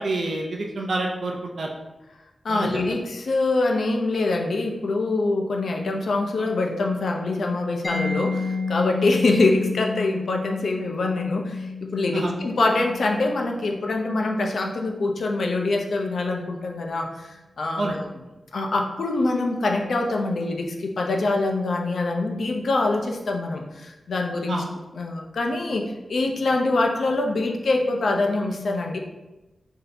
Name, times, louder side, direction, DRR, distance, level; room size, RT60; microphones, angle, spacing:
voice 1, 0.0-1.7 2.5-2.7 12.1-12.3 17.8-18.0 24.5-24.7, right 2 dB, 65° right, 0 dB, 0.4 m, -28 dB
voice 2, 2.4-18.1 18.5-24.6 24.9-29.0, left 2 dB, 75° left, 2 dB, 0.5 m, -24 dB
Mallet percussion, 7.8-15.4, left 4 dB, 40° left, 0.8 m, -31 dB
3.3 x 2.7 x 4.0 m, 1.0 s
wide cardioid pair, 145°, 0 cm